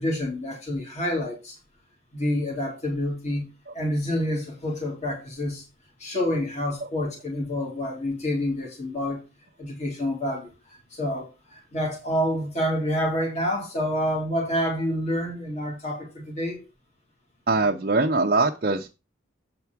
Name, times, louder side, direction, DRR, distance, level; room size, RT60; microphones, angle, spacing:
voice 1, 0.0-1.6 2.1-3.5 3.7-5.6 6.0-9.2 9.6-16.6, left 1 dB, 35° left, -1 dB, 2.4 m, -28 dB
voice 2, 17.5-18.9, right 3 dB, 45° right, 1 dB, 0.7 m, -22 dB
7.8 x 4.7 x 6.0 m, 0.28 s
head